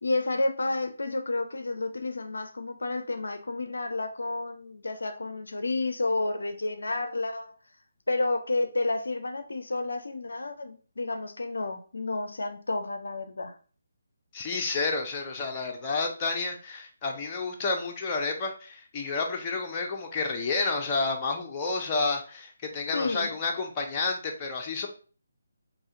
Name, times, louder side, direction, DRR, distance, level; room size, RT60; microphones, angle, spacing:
voice 1, 0.0-7.5 8.1-13.5 22.9-23.3, left 2 dB, 70° left, 7 dB, 0.5 m, -30 dB
voice 2, 14.3-24.9, left 3 dB, 20° left, 1 dB, 0.7 m, -30 dB
4.7 x 2.6 x 2.7 m, 0.39 s
figure-of-eight pair, 145°, 0 cm